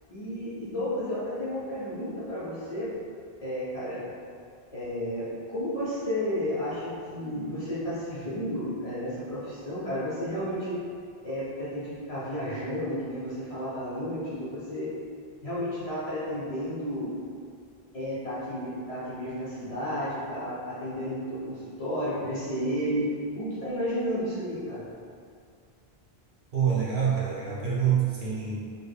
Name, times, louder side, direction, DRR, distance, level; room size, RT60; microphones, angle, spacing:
voice 1, 0.1-3.0 3.4-4.0 4.7-10.8 11.2-14.9 15.4-17.1 17.9-24.9, equal, 45° left, -10 dB, 0.5 m, -32 dB
voice 2, 26.5-28.7, right 7 dB, 60° right, -7 dB, 0.7 m, -26 dB
2.1 x 2.0 x 3.4 m, 2.3 s
omnidirectional pair, 1.0 m